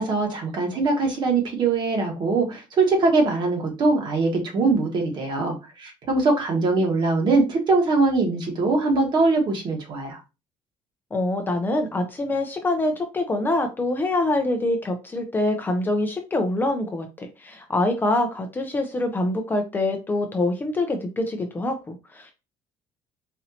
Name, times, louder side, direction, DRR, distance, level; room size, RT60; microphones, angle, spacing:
voice 1, 0.0-10.2, right 3 dB, 40° right, 2 dB, 1.4 m, -22 dB
voice 2, 11.1-22.3, left 2 dB, 15° left, 4 dB, 0.5 m, -25 dB
4.2 x 2.7 x 2.7 m, 0.27 s
cardioid pair, 150°, 11 cm